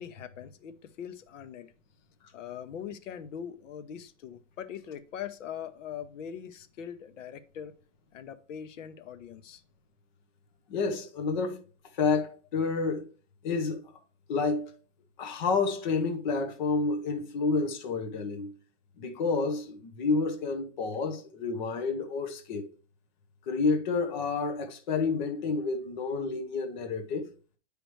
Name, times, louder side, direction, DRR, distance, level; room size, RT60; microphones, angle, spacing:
voice 1, 0.0-1.7 2.3-7.7 8.1-9.6, left 8 dB, 85° left, 0.9 m, -41 dB
voice 2, 10.7-11.6 11.9-13.1 13.4-13.9 14.3-14.7 15.2-18.5 19.0-22.7 23.5-27.3, left 4 dB, 40° left, 0.9 m, -29 dB
9.1 x 4.9 x 3.1 m
supercardioid pair, 180°, 37 cm